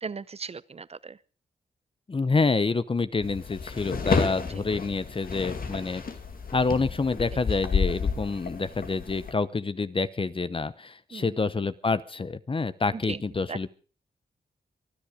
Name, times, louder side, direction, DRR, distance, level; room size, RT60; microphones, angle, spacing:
voice 1, 0.0-1.2 4.5-4.7 11.1-11.4 12.9-13.2 13.5-13.7, right 5 dB, 40° right, 19 dB, 0.7 m, -37 dB
voice 2, 2.1-6.0 6.5-13.7, left 4 dB, 35° left, 15 dB, 0.8 m, -27 dB
sound 1, 3.2-9.3, left 5 dB, 60° left, 2.2 m, -30 dB
25.5 x 10.5 x 5.1 m, 0.40 s
cardioid pair, 85°, 16 cm